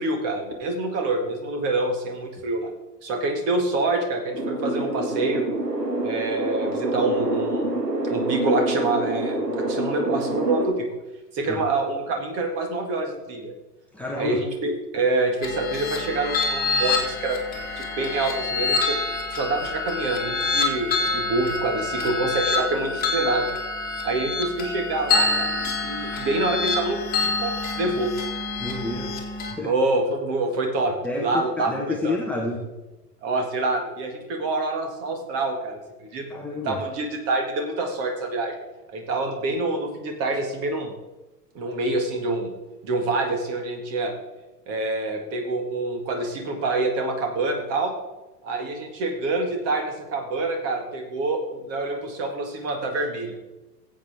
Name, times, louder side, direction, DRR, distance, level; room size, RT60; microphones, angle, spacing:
voice 1, 0.0-2.7 3.0-5.5 6.0-7.7 8.0-10.9 11.3-13.5 14.2-17.4 17.8-19.0 19.3-23.5 24.0-28.1 29.6-32.2 33.2-36.2 36.6-38.5 38.9-41.0 41.5-42.5 42.8-44.1 44.7-47.9 48.4-53.4, right 2 dB, 30° right, 4 dB, 1.9 m, -26 dB
sound 1, 4.3-10.7, right 2 dB, 80° right, 1.8 m, -26 dB
voice 2, 13.9-14.4 28.6-29.2 29.5-29.7 31.0-32.6 36.3-36.8, left 2 dB, 5° left, -3 dB, 1.1 m, -29 dB
sound 2, 15.4-29.5, left 3 dB, 20° left, 2.0 m, -27 dB
17.0 x 8.0 x 3.5 m, 1.1 s
figure-of-eight pair, 105°, 48 cm